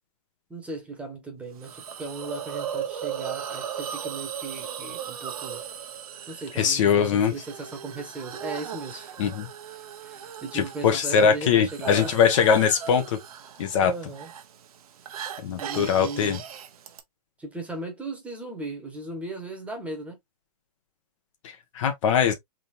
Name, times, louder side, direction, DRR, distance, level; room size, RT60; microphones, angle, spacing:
voice 1, 0.5-5.6 6.3-9.2 9.7-12.1 13.8-14.3 15.6-16.4 17.4-20.2, right 3 dB, 5° right, 1.3 m, -37 dB
Hiss, 1.6-17.0, right 9 dB, 65° right, 1.0 m, -38 dB
voice 2, 6.6-7.3 9.2-9.5 10.5-13.2 13.6-13.9 15.4-16.4 21.4-22.3, left 7 dB, 50° left, 1.2 m, -22 dB
4.0 x 3.8 x 2.6 m
hypercardioid pair, 140°, 20 cm